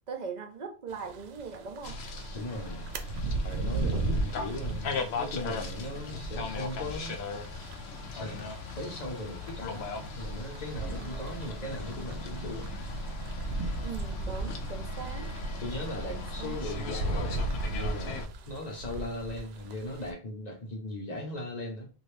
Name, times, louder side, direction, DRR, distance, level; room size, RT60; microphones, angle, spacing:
voice 1, 0.1-2.0 11.0-11.4 13.8-15.3 16.1-16.6, right 5 dB, 50° right, 0.7 m, -40 dB
sound 1, 0.9-20.1, right 2 dB, 85° right, 0.8 m, -37 dB
sound 2, 1.8-18.3, left 2 dB, 85° left, 0.8 m, -38 dB
voice 2, 2.3-2.9 3.4-7.2 8.0-8.4 8.8-9.9 10.2-12.7 15.6-21.9, left 1 dB, 45° left, 1.0 m, -38 dB
2.7 x 2.6 x 3.2 m
omnidirectional pair, 1.0 m